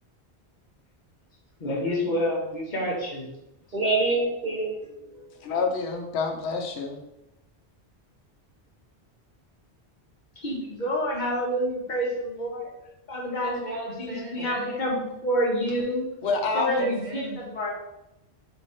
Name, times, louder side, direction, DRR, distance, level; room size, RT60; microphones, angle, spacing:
voice 1, 1.6-3.3 10.4-12.7 13.1-16.0 16.5-17.7, equal, 45° left, -2 dB, 1.1 m, -28 dB
voice 2, 3.7-5.4 13.4-14.8 16.8-17.4, right 3 dB, 45° right, -2 dB, 0.9 m, -29 dB
voice 3, 5.4-7.0 14.4-14.5 16.2-16.9, left 4 dB, 85° left, 3 dB, 0.9 m, -28 dB
3.5 x 3.0 x 4.2 m, 0.88 s
omnidirectional pair, 1.1 m